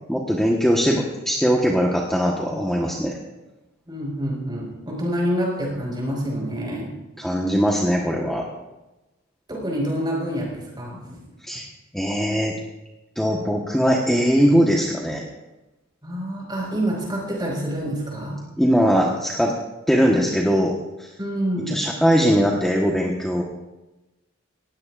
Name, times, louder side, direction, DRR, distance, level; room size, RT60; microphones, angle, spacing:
voice 1, 0.1-3.2 7.2-8.4 11.4-11.7 11.9-12.5 13.1-15.2 18.6-19.5 19.9-21.1 21.7-23.4, equal, ahead, -2 dB, 1.2 m, -20 dB
voice 2, 3.9-6.9 9.5-11.2 16.0-18.4 21.2-21.8, equal, 20° right, -2 dB, 5.1 m, -27 dB
19.0 x 16.5 x 2.5 m, 1.0 s
head